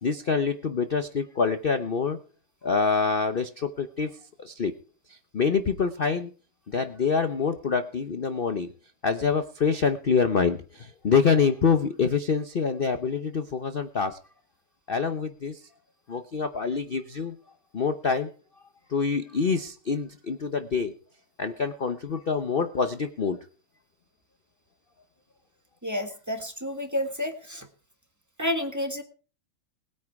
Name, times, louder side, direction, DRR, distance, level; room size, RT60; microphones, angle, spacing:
voice 1, 0.0-2.2 2.6-4.7 5.1-6.3 6.7-8.7 9.0-14.2 14.9-15.6 16.1-17.4 17.7-18.3 18.9-20.9 21.4-23.4, left 5 dB, 55° left, 9 dB, 0.6 m, -26 dB
voice 2, 25.8-27.7 28.4-29.0, left 1 dB, 10° right, 6 dB, 1.4 m, -30 dB
20.0 x 9.1 x 4.8 m, 0.40 s
omnidirectional pair, 2.2 m